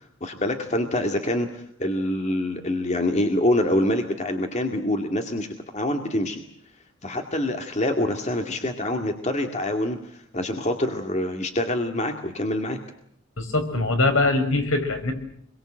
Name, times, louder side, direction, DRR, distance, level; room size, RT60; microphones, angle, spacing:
voice 1, 0.2-5.5 5.7-6.4 7.0-12.8, left 1 dB, 35° left, 4 dB, 2.2 m, -25 dB
voice 2, 13.4-15.1, left 2 dB, 75° left, 6 dB, 5.8 m, -22 dB
27.5 x 22.5 x 7.8 m, 0.67 s
head